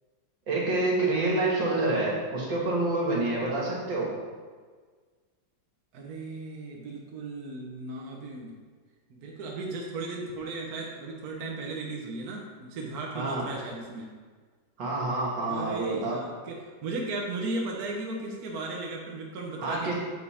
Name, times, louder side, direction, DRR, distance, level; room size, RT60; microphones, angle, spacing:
voice 1, 0.5-4.1 13.2-13.4 14.8-16.2 19.6-19.9, right 2 dB, 70° right, -4 dB, 2.3 m, -27 dB
voice 2, 5.9-8.6 9.1-14.1 15.5-19.9, right 2 dB, 55° right, -1 dB, 1.4 m, -36 dB
8.1 x 5.3 x 4.2 m, 1.5 s
omnidirectional pair, 2.1 m